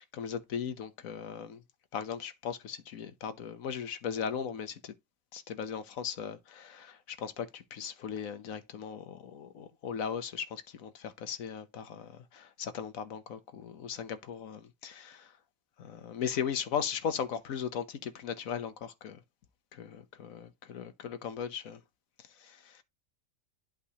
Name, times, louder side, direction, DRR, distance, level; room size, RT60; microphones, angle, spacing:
voice 1, 0.1-1.6 1.9-4.9 5.3-15.3 15.8-19.2 19.7-21.8 22.4-22.8, left 7 dB, 75° left, 1.3 m, -38 dB
11.0 x 3.8 x 2.9 m
omnidirectional pair, 1.4 m